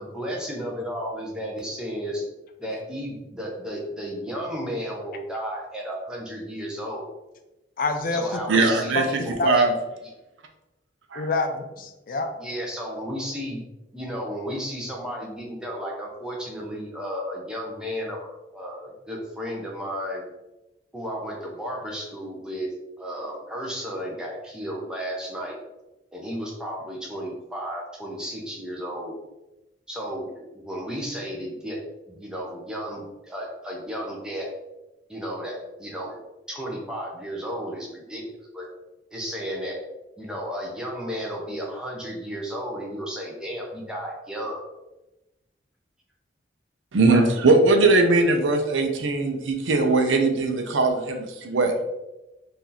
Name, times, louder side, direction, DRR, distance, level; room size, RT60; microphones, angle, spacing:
voice 1, 0.0-2.2 2.6-7.1 8.1-9.6 12.4-13.6 13.9-20.2 20.9-22.7 23.0-25.6 26.1-29.1 29.9-34.5 35.1-36.2 36.5-38.7 39.1-39.8 40.2-44.6, equal, 5° right, -2 dB, 0.6 m, -33 dB
voice 2, 7.8-8.4 8.9-9.5 11.2-12.3, left 3 dB, 45° left, 6 dB, 0.3 m, -27 dB
voice 3, 8.5-9.1 9.4-9.7 11.1-11.3 46.9-51.7, right 3 dB, 85° right, 4 dB, 0.5 m, -20 dB
2.9 x 2.6 x 3.8 m, 1.0 s
head